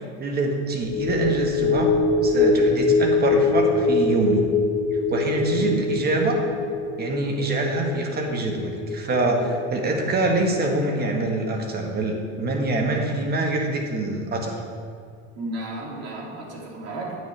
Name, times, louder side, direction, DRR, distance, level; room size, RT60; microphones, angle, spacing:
voice 1, 0.2-1.9 2.2-4.4 5.1-6.4 7.0-14.6, right 2 dB, 25° right, 2 dB, 1.3 m, -25 dB
sound 1, 0.8-11.4 11.8-11.9, left 3 dB, 35° left, 2.5 m, -24 dB
voice 2, 15.3-17.2, right 2 dB, 45° right, -3 dB, 2.4 m, -34 dB
9.5 x 8.5 x 3.3 m, 2.1 s
supercardioid pair, 120°, 36 cm